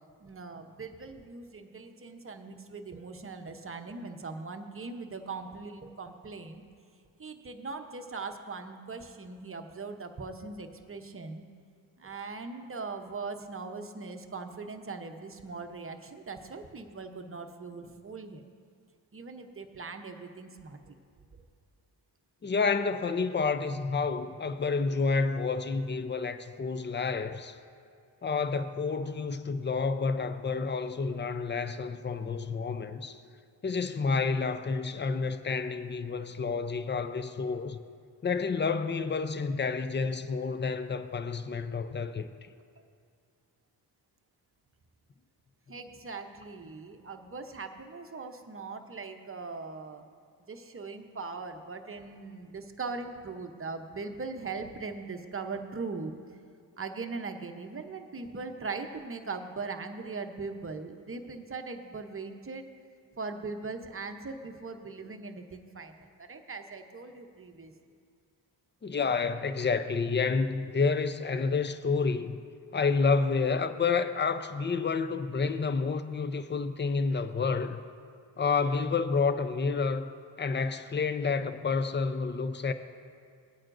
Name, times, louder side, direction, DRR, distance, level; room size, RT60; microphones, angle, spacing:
voice 1, 0.2-6.6 7.2-11.4 12.0-18.4 19.1-21.0 45.7-50.0 50.5-56.1 56.8-62.7 63.2-67.7, right 4 dB, 30° right, 0.8 m, -40 dB
voice 2, 22.4-27.6 28.2-33.2 33.6-37.8 38.2-42.5 68.8-72.4 72.7-77.8 78.4-80.1 80.4-82.7, left 4 dB, 25° left, 0.5 m, -29 dB
17.5 x 8.8 x 2.6 m
cardioid pair, 55°, 47 cm